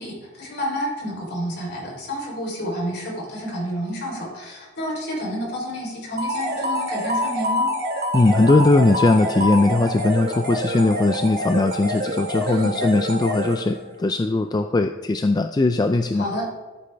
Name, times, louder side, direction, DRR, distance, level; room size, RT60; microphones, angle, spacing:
voice 1, 0.0-7.7 12.5-12.8 16.1-16.5, equal, 50° left, -1 dB, 3.5 m, -29 dB
sound 1, 6.2-13.9, equal, 50° right, 2.0 m, -26 dB
voice 2, 8.1-16.4, left 2 dB, 20° left, 7 dB, 0.3 m, -19 dB
13.5 x 8.5 x 3.3 m, 1.2 s
head